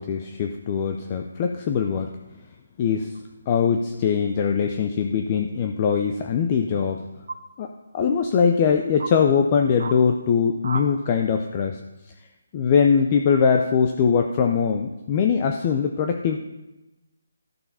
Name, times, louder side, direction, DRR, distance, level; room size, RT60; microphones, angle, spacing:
voice 1, 0.0-2.1 2.8-3.1 3.5-7.1 7.6-11.8 12.5-16.4, left 6 dB, 25° left, 5 dB, 0.5 m, -22 dB
sound 1, 3.1-3.2 4.7-5.2 7.3-7.4 8.2-8.3 9.0-9.1 9.8-10.0 10.6-10.9, right 3 dB, 70° right, 1.5 m, -34 dB
12.5 x 6.8 x 5.5 m, 1.0 s
hypercardioid pair, 170°, 0 cm